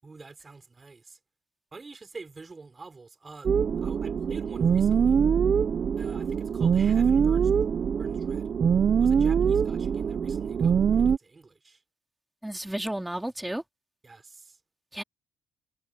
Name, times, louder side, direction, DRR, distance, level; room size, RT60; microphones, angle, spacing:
voice 1, 0.0-1.2 1.7-3.5 3.8-5.2 6.0-7.6 8.0-8.5 9.0-11.8 14.0-14.6, right 3 dB, 25° right, 5.8 m, -47 dB
sound 1, 3.4-11.2, right 7 dB, 45° right, 0.8 m, -23 dB
voice 2, 12.4-13.6 14.9-15.0, right 1 dB, 5° right, 3.5 m, -32 dB
cardioid pair, 105°, 0 cm